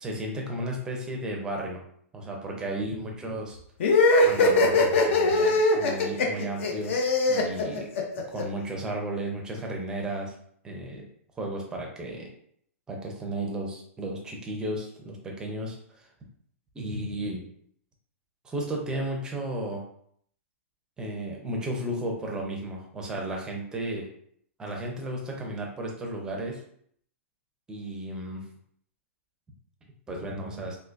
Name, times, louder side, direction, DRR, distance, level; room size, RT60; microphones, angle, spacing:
voice 1, 0.0-1.8 2.1-3.6 4.2-7.9 8.3-10.3 10.6-11.1 11.4-12.3 12.9-16.1 16.7-17.5 18.4-19.8 21.0-24.1 24.6-26.6 27.7-28.5 30.1-30.8, right 1 dB, 10° right, -1 dB, 0.5 m, -34 dB
sound 1, 3.8-8.4, left 2 dB, 55° left, 0.7 m, -21 dB
3.7 x 2.5 x 2.5 m, 0.66 s
hypercardioid pair, 155°, 8 cm